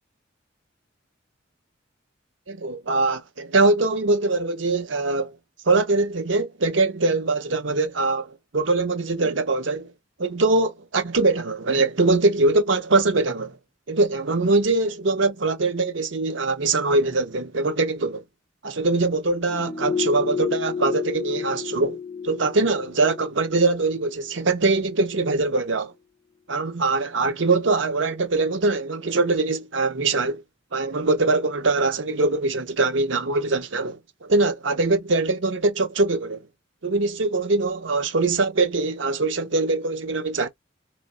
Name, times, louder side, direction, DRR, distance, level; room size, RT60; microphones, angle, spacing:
voice 1, 2.5-5.4 5.7-9.9 10.2-13.6 13.9-18.2 18.6-22.0 22.2-25.9 26.5-30.4 30.7-36.5 36.8-40.5, right 3 dB, 70° right, 0.8 m, -22 dB
sound 1, 19.5-24.7 25.0-25.1, left 6 dB, 30° left, 0.6 m, -31 dB
4.1 x 3.2 x 2.5 m
head